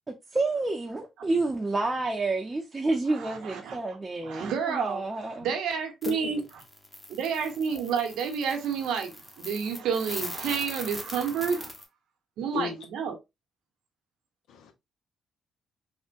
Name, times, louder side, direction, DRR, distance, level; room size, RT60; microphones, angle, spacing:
voice 1, 0.3-5.5, right 2 dB, 20° right, 0.6 m, -29 dB
voice 2, 3.1-3.8 4.2-5.0 5.4-6.4 7.1-11.7 12.4-13.1, right 6 dB, 85° right, 0.8 m, -30 dB
voice 3, 6.0-6.3 12.5-12.8 14.5-14.7, left 7 dB, 80° left, 0.7 m, -34 dB
sound 1, 6.0-6.1 6.4-11.8, left 1 dB, 15° left, 0.8 m, -41 dB
3.5 x 2.1 x 2.5 m
cardioid pair, 90°, 0 cm